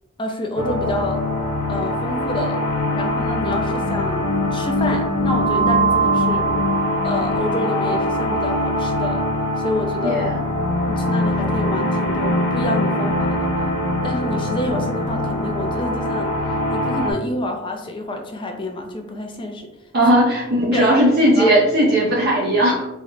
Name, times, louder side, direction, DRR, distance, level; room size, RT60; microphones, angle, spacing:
voice 1, 0.2-1.2 1.7-2.6 2.9-6.5 7.0-9.2 9.6-10.3 10.9-13.5 14.0-19.7 20.7-21.0 21.4-21.5, left 1 dB, 20° left, 3 dB, 0.4 m, -28 dB
sound 1, 0.6-17.1, equal, 80° left, 0.6 m, -22 dB
sound 2, 8.2-12.7 15.1-19.6, equal, 90° right, 0.9 m, -40 dB
voice 2, 10.0-10.4 19.9-22.9, right 1 dB, 45° right, -3 dB, 0.6 m, -17 dB
3.6 x 2.1 x 3.2 m, 0.96 s
head